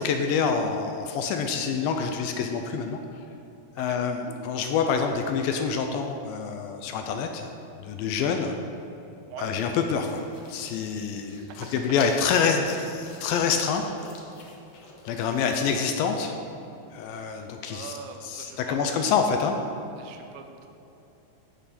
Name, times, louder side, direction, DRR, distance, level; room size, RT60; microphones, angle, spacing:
voice 1, 0.0-3.0 3.8-7.5 7.8-8.6 9.4-13.8 15.1-16.4 16.9-17.9 18.2-19.6, left 6 dB, 85° left, 5 dB, 2.1 m, -26 dB
sound 1, 9.7-15.6, left 3 dB, 70° left, 1.7 m, -47 dB
voice 2, 17.3-19.1 20.0-20.7, right 7 dB, 85° right, 5 dB, 2.0 m, -43 dB
15.5 x 5.7 x 4.2 m, 2.8 s
omnidirectional pair, 4.7 m